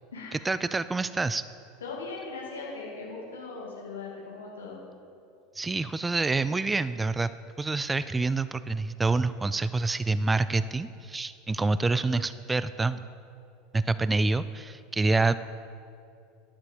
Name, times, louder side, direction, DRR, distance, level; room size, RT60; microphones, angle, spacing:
voice 1, 0.5-1.4 5.5-7.3 7.6-13.0 13.7-15.3, right 3 dB, 15° right, 14 dB, 0.3 m, -27 dB
voice 2, 1.8-4.8, left 3 dB, 75° left, -3 dB, 2.6 m, -39 dB
11.0 x 7.5 x 6.9 m, 2.5 s
figure-of-eight pair, 75°, 0 cm